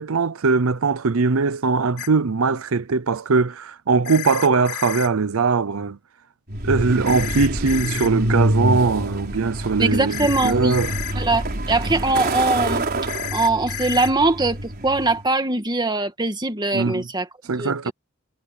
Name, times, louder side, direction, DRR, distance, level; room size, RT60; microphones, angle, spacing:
voice 1, 0.0-6.0 6.6-10.9 16.7-17.1 17.4-17.9, right 4 dB, 75° right, 0.7 m, -21 dB
sound 1, 2.0-2.1 4.0-5.1 7.1-8.1 10.1-11.1 13.1-14.1, left 14 dB, 55° left, 4.0 m, -31 dB
Truck, 6.5-15.2, right 1 dB, 50° right, 4.5 m, -26 dB
voice 2, 9.8-10.8 11.2-12.9 13.3-17.3 17.6-17.9, right 2 dB, 20° right, 2.2 m, -22 dB
head